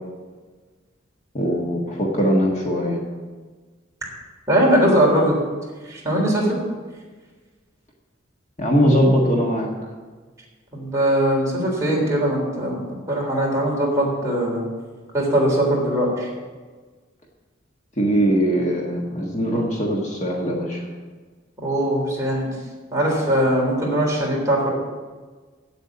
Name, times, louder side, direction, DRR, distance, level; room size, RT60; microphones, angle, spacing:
voice 1, 1.3-3.0 8.6-9.7 18.0-20.8, equal, 35° left, -2 dB, 1.5 m, -21 dB
voice 2, 4.5-5.3 5.9-6.6 10.7-14.7 15.1-16.3 21.6-22.5 22.9-24.7, right 1 dB, 15° right, -4 dB, 3.5 m, -20 dB
8.3 x 8.0 x 8.5 m, 1.4 s
head